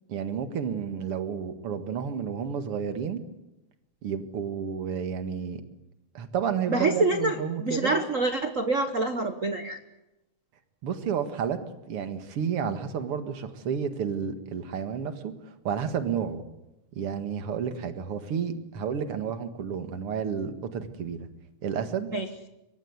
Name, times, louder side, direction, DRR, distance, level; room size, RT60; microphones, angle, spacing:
voice 1, 0.1-3.2 4.0-5.6 6.1-8.0 10.8-11.6 11.9-16.4 16.9-21.3 21.6-22.1, right 7 dB, 50° right, 8 dB, 2.5 m, -31 dB
voice 2, 6.7-9.8 22.1-22.3, right 2 dB, 75° right, 8 dB, 0.7 m, -26 dB
26.5 x 23.5 x 8.2 m, 0.96 s
omnidirectional pair, 3.4 m